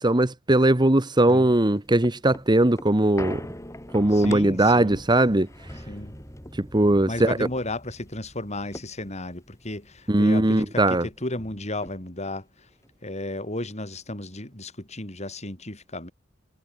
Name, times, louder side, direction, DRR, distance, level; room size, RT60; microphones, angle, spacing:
voice 1, 0.0-3.4 3.9-5.5 6.6-7.4 10.1-11.1, right 1 dB, 20° right, 1.2 m, -20 dB
sound 1, 1.5-10.3 10.6-10.7 11.0-12.4 12.8-12.9, left 1 dB, 15° left, 6.6 m, -43 dB
voice 2, 4.1-5.0 5.9-6.2 7.1-12.7 13.0-16.1, left 1 dB, 35° left, 5.6 m, -34 dB
head